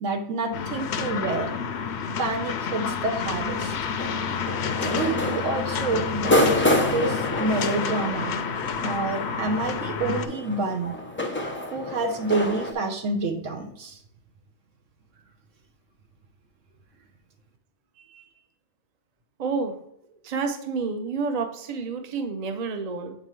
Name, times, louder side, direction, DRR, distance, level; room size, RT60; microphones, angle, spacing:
voice 1, 0.0-1.5 2.2-3.8 4.8-8.4 8.8-10.9 11.7-14.0, right 2 dB, 85° right, 4 dB, 1.3 m, -28 dB
sound 1, 0.5-10.3, left 6 dB, 65° left, 0.8 m, -29 dB
sound 2, 3.5-12.7, left 1 dB, 15° left, 0.4 m, -29 dB
voice 2, 19.4-19.7 20.2-23.2, right 4 dB, 40° right, 6 dB, 0.7 m, -29 dB
7.5 x 4.3 x 3.1 m, 0.74 s
omnidirectional pair, 1.3 m